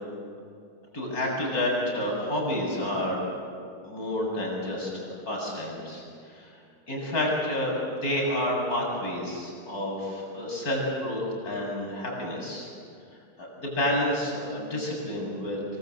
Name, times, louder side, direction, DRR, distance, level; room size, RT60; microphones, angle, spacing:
voice 1, 0.9-3.6 3.8-6.0 6.3-6.5 6.9-12.7 13.4-15.6, left 1 dB, 70° left, -2 dB, 8.5 m, -29 dB
29.5 x 23.0 x 8.2 m, 2.3 s
omnidirectional pair, 1.7 m